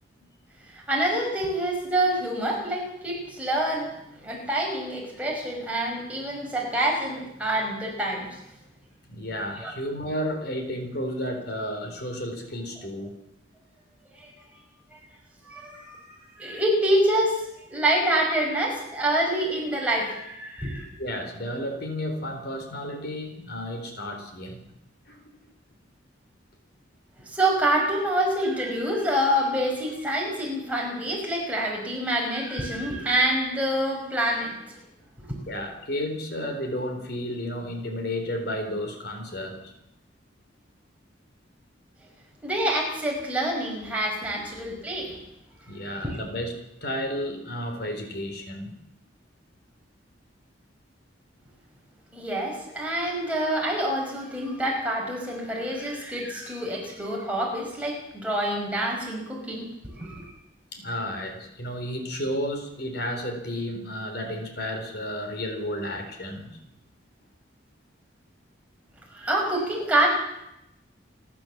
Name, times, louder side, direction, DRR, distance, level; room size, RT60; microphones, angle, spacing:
voice 1, 0.7-8.4 9.6-9.7 14.2-14.3 15.4-17.4 17.7-20.9 27.2-34.8 35.2-35.4 42.4-45.2 46.0-46.2 52.1-59.7 60.0-60.3 69.1-70.1, right 1 dB, 5° right, -2 dB, 5.5 m, -26 dB
voice 2, 9.1-13.1 21.0-24.7 25.1-25.2 35.5-39.7 44.3-44.4 45.7-46.5 46.8-48.7 60.7-66.6, equal, 55° left, 4 dB, 4.2 m, -32 dB
29.5 x 12.0 x 7.5 m, 0.84 s
head